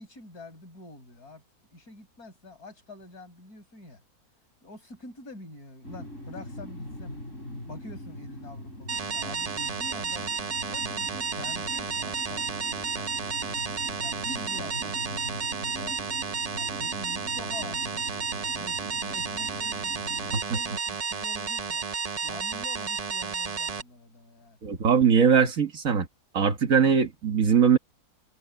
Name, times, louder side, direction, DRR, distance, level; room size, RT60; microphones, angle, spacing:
voice 1, 0.0-1.4 1.7-4.0 4.6-7.2 7.7-10.3 10.7-13.3 14.0-16.0 16.5-21.9 22.2-24.6, left 2 dB, 70° left, 7.1 m, -46 dB
sound 1, 5.8-20.4, left 1 dB, 50° left, 7.0 m, -42 dB
sound 2, 8.9-23.8, right 5 dB, 40° right, 0.6 m, -32 dB
voice 2, 24.6-26.1 26.3-27.8, right 7 dB, 60° right, 1.8 m, -21 dB
omnidirectional pair, 1.6 m